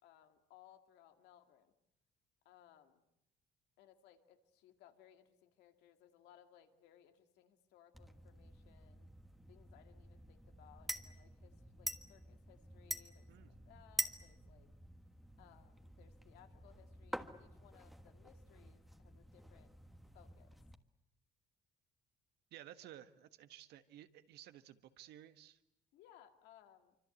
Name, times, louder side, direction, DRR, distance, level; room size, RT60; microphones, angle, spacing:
voice 1, 0.0-1.7 2.4-3.0 3.8-9.1 9.5-14.7 15.4-19.7 20.1-20.6 22.8-22.9 25.9-27.0, left 11 dB, 90° left, 7 dB, 2.2 m, -65 dB
sound 1, 7.9-20.7, equal, ahead, 1.4 m, -48 dB
voice 2, 22.5-25.6, right 12 dB, 80° right, 10 dB, 1.5 m, -55 dB
25.5 x 25.0 x 8.3 m, 0.83 s
cardioid pair, 110°, 17 cm